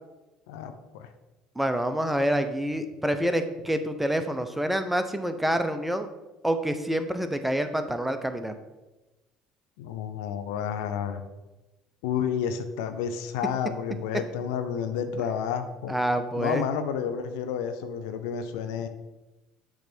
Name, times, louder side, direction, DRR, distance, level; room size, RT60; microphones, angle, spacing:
voice 1, 0.5-1.1 9.8-11.2 12.0-16.0 16.3-18.9, left 8 dB, 80° left, 8 dB, 0.6 m, -30 dB
voice 2, 1.6-6.1 6.4-8.5 15.9-16.6, right 1 dB, 5° right, 8 dB, 0.7 m, -27 dB
7.0 x 3.3 x 6.0 m, 1.1 s
hypercardioid pair, 70°, 2 cm